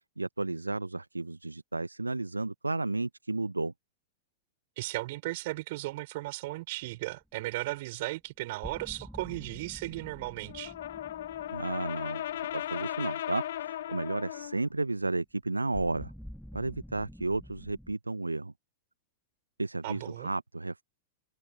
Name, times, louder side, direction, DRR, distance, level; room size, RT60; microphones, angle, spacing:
voice 1, 0.2-3.7 11.5-12.2 12.5-16.1 16.5-18.5 19.6-20.8, right 2 dB, 85° right, 1.3 m, -33 dB
voice 2, 4.8-10.7 19.8-20.3, right 20 dB, 50° right, 5.6 m, -36 dB
sound 1, 7.2-7.3 8.6-13.7 15.7-18.0, equal, ahead, 2.8 m, -48 dB
Brass instrument, 10.5-14.6, left 12 dB, 60° left, 2.2 m, -37 dB
figure-of-eight pair, 95°, 0 cm